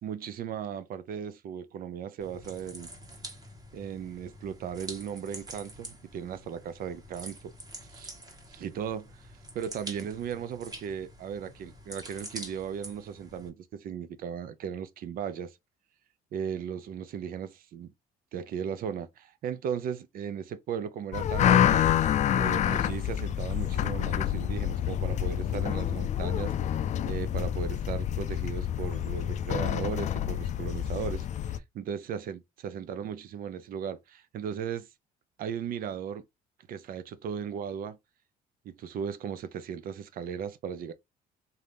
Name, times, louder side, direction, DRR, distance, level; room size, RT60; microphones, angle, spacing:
voice 1, 0.0-2.9 3.7-7.5 7.9-8.1 8.5-9.1 9.5-15.5 16.3-17.9 18.3-21.9 22.4-26.5 27.1-34.9 35.4-36.2 36.7-38.0 38.6-40.9, right 8 dB, 60° right, 0.6 m, -36 dB
sound 1, 2.2-13.5, right 1 dB, 25° right, 1.3 m, -46 dB
sound 2, 21.1-31.6, left 10 dB, 45° left, 0.4 m, -27 dB
3.9 x 2.8 x 3.4 m
cardioid pair, 110°, 17 cm